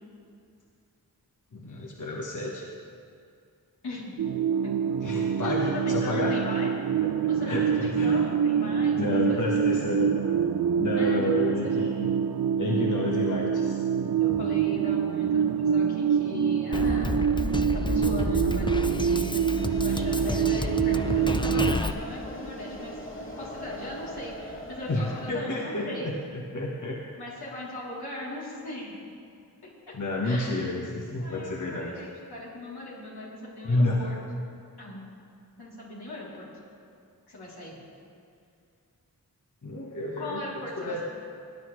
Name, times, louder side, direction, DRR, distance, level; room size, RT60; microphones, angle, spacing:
voice 1, 1.5-2.6 5.0-6.4 7.5-8.2 8.8-10.4 10.8-12.1 12.6-13.8 24.9-27.0 29.9-32.1 33.6-34.1 39.6-40.4 40.8-41.0, left 2 dB, 50° left, -2 dB, 1.4 m, -30 dB
voice 2, 3.8-4.2 4.6-4.9 5.4-6.7 7.3-9.4 9.6-9.9 11.0-11.4 11.7-11.9 14.2-17.2 17.6-19.4 19.7-22.9 23.3-26.1 27.2-29.0 29.9-30.0 30.2-30.7 31.2-34.1 34.8-35.0 35.6-36.5 37.3-37.7 40.2-41.0, left 2 dB, 85° left, -7 dB, 3.3 m, -38 dB
sound 1, 4.2-21.8, right 8 dB, 60° right, 0.5 m, -26 dB
Drum kit, 16.7-21.9, left 2 dB, 15° left, 0.5 m, -30 dB
sound 2, 19.5-25.3, equal, 30° left, 1.9 m, -40 dB
18.5 x 9.6 x 3.2 m, 2.4 s
cardioid pair, 45°, 38 cm